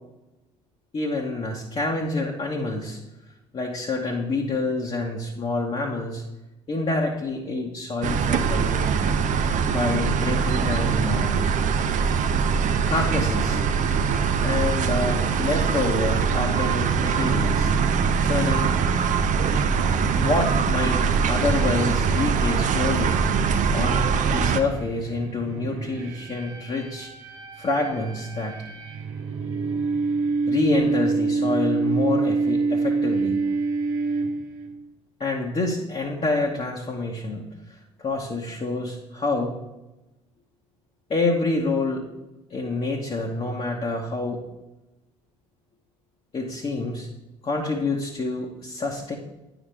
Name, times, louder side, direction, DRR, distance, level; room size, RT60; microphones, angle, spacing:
voice 1, 0.9-3.0 3.5-6.2 6.7-9.1 9.7-11.4 12.8-13.6 14.4-17.7 18.2-18.8 20.1-23.2 23.7-27.1 27.6-28.6 30.5-33.4 35.2-37.5 38.0-39.5 41.1-42.1 42.5-44.4 46.3-47.1 47.4-49.2, left 2 dB, 35° left, -2 dB, 1.2 m, -27 dB
sound 1, 8.0-24.6, right 6 dB, 50° right, 0.6 m, -22 dB
sound 2, 13.1-24.9, right 2 dB, 5° left, 0.7 m, -38 dB
sound 3, 23.7-34.7, right 4 dB, 80° right, 0.9 m, -27 dB
9.3 x 5.9 x 3.4 m, 1.0 s
hypercardioid pair, 55°, 17 cm